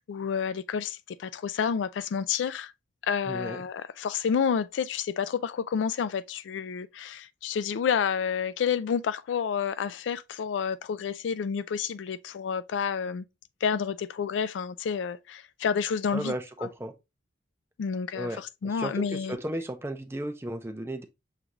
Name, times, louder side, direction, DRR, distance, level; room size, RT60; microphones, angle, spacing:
voice 1, 0.0-2.7 3.0-13.2 13.6-16.3 16.6-16.7 17.8-19.4, left 7 dB, 90° left, 0.3 m, -29 dB
voice 2, 3.3-3.6 16.1-16.9 18.1-21.0, right 1 dB, 15° right, 0.5 m, -34 dB
6.5 x 2.4 x 2.9 m
head